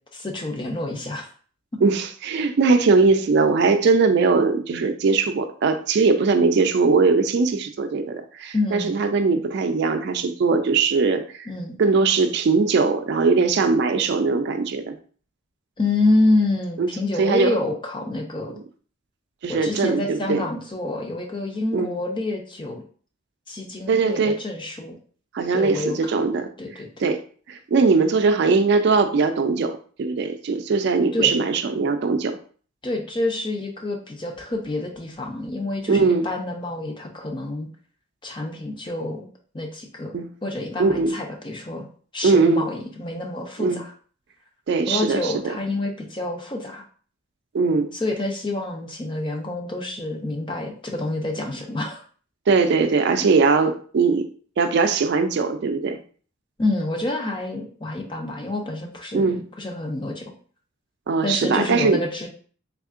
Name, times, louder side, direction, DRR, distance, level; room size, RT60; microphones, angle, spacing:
voice 1, 0.1-1.3 8.5-9.0 11.5-11.8 15.8-18.5 19.5-22.8 23.5-25.0 25.5-26.0 26.6-27.0 31.1-31.3 32.8-37.7 38.2-39.3 39.5-41.8 42.1-43.9 44.9-46.8 47.9-52.0 56.6-60.3 61.2-62.3, left 2 dB, 25° left, 1 dB, 0.5 m, -27 dB
voice 2, 1.8-11.5 11.8-14.9 16.8-16.9 17.2-17.5 19.4-20.5 21.7-21.9 23.9-24.4 25.3-27.2 27.5-32.4 35.9-36.3 40.1-40.3 40.8-41.2 42.2-42.7 43.6-43.8 44.7-45.3 47.5-47.9 52.5-54.3 54.6-56.0 59.1-59.4 61.1-62.0, right 4 dB, 55° right, 8 dB, 0.3 m, -20 dB
3.5 x 3.4 x 2.4 m, 0.44 s
head